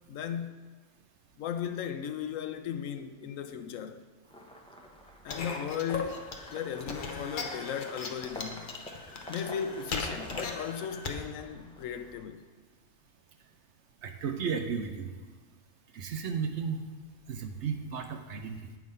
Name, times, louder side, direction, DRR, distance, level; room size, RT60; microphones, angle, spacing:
voice 1, 0.1-0.6 1.4-4.0 5.2-8.7 9.3-12.4, left 8 dB, 70° left, 0.9 m, -36 dB
sound 1, 4.2-12.2, equal, 5° left, 0.5 m, -48 dB
sound 2, 5.3-11.2, left 4 dB, 50° left, 0.7 m, -39 dB
voice 2, 14.0-15.1 15.9-16.8 17.3-18.6, right 6 dB, 60° right, 0.8 m, -34 dB
8.0 x 5.2 x 5.3 m
omnidirectional pair, 1.5 m